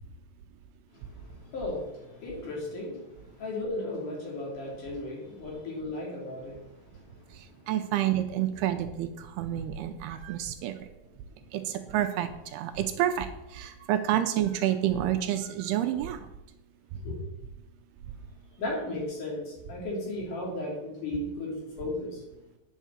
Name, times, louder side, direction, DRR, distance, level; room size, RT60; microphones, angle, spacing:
voice 1, 0.9-7.7 11.4-11.6 17.0-17.2 18.6-22.2, left 2 dB, 55° left, -2 dB, 4.0 m, -36 dB
voice 2, 7.3-10.9 11.5-16.3, right 11 dB, 80° right, 8 dB, 2.5 m, -29 dB
9.5 x 6.4 x 7.3 m, 0.98 s
omnidirectional pair, 4.8 m